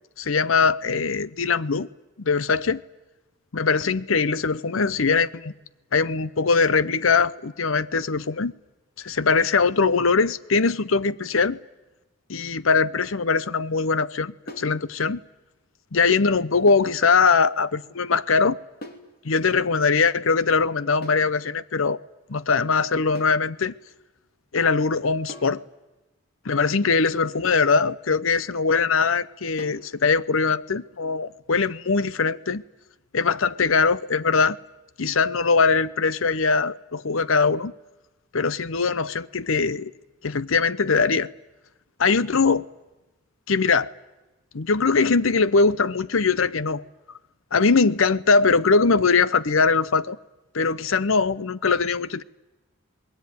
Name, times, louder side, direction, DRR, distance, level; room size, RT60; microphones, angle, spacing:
voice 1, 0.2-1.9 2.2-2.8 3.5-5.5 5.9-8.5 9.0-11.6 12.3-15.2 15.9-18.6 19.2-22.0 22.3-23.7 24.5-25.6 26.4-32.6 33.1-34.6 35.0-37.7 38.3-39.9 40.2-41.3 42.0-42.6 43.5-43.9 44.5-46.8 47.5-50.2 50.5-52.2, left 4 dB, 70° left, 0.8 m, -21 dB
sound 1, 14.5-14.8 16.7-17.0 18.8-19.1 21.0-21.3 23.2-23.5 25.3-25.6 27.4-27.8 29.6-29.9, left 1 dB, 45° left, 3.2 m, -40 dB
27.5 x 20.5 x 9.4 m
head